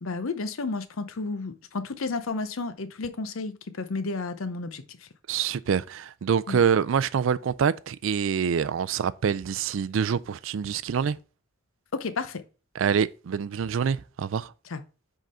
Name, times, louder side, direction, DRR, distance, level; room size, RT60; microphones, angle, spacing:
voice 1, 0.0-5.1 6.5-6.6 11.9-12.4 14.7-14.8, left 3 dB, 75° left, 0.7 m, -32 dB
voice 2, 5.3-11.2 12.8-14.5, right 7 dB, 65° right, 0.4 m, -26 dB
5.2 x 3.8 x 5.5 m
head